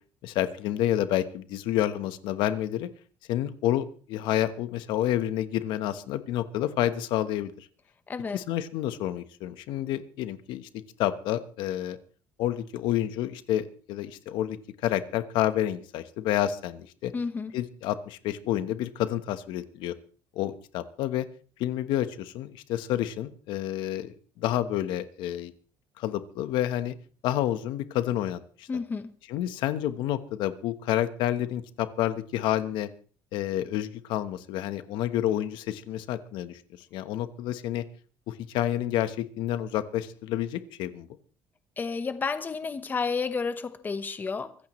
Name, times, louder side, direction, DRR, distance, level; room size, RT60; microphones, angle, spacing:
voice 1, 0.2-2.9 3.3-7.7 8.3-12.0 12.4-17.1 17.5-19.9 20.3-21.3 21.6-25.5 26.0-26.9 27.2-28.7 29.3-32.9 33.3-36.6 36.9-37.8 38.3-41.1, left 12 dB, 80° left, 1.2 m, -29 dB
voice 2, 8.1-8.4 17.1-17.5 28.7-29.1 41.8-44.6, left 5 dB, 25° left, 1.1 m, -31 dB
24.5 x 14.5 x 3.2 m
cardioid pair, 145°, 8 cm